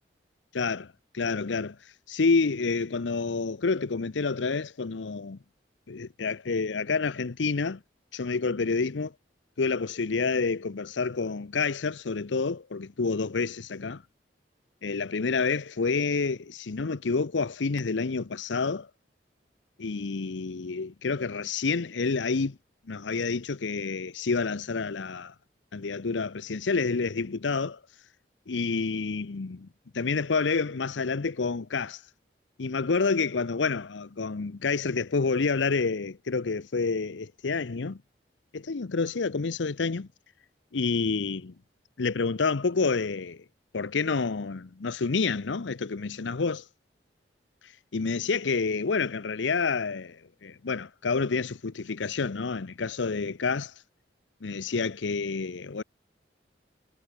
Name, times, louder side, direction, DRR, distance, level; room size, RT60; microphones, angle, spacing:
voice 1, 0.5-1.8 2.1-5.4 5.9-7.8 8.1-9.1 9.6-14.0 14.8-18.9 19.8-22.6 22.9-25.3 25.7-27.8 28.5-29.7 29.9-32.0 32.6-38.0 38.5-40.1 40.7-41.5 42.0-43.4 43.7-46.7 47.9-53.7 54.4-55.8, left 4 dB, 85° left, 0.7 m, -28 dB
head